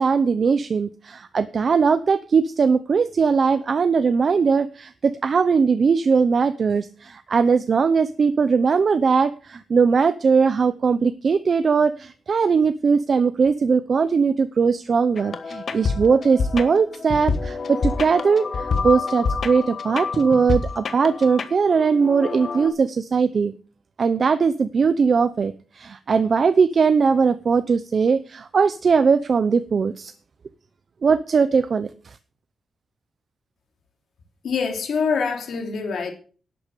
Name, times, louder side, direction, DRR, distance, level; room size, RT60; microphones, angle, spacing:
voice 1, 0.0-23.5 24.0-30.1 31.0-31.9, right 5 dB, 40° right, 0.7 m, -20 dB
sound 1, 15.2-22.7, left 4 dB, 45° left, 1.3 m, -27 dB
voice 2, 34.4-36.1, left 5 dB, 70° left, 3.0 m, -25 dB
11.5 x 8.5 x 6.7 m
wide cardioid pair, 175°, 0 cm